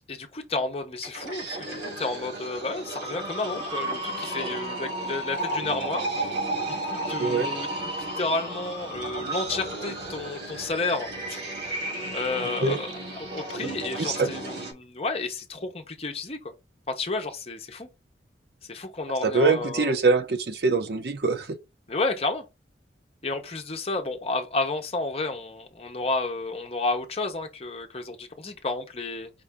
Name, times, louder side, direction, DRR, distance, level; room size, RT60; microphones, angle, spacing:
voice 1, 0.1-6.3 6.7-11.4 12.1-16.5 16.9-17.9 18.7-19.9 21.9-22.4 23.2-29.3, left 3 dB, 35° left, 0.8 m, -31 dB
sound 1, 0.9-14.7, right 1 dB, 90° right, 2.3 m, -33 dB
voice 2, 7.2-7.5 12.6-12.8 14.0-14.3 19.2-21.6, right 4 dB, 60° right, 0.6 m, -23 dB
5.2 x 2.6 x 3.4 m
head